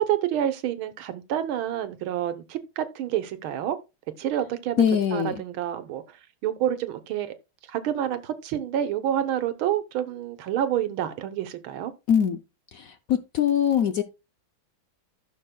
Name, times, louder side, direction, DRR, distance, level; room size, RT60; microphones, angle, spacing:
voice 1, 0.0-3.8 4.2-7.3 7.7-11.9, right 11 dB, 80° right, 1.8 m, -28 dB
voice 2, 4.8-5.3 12.1-12.4 12.7-14.0, left 8 dB, 90° left, 0.7 m, -22 dB
15.5 x 6.4 x 2.2 m
omnidirectional pair, 2.3 m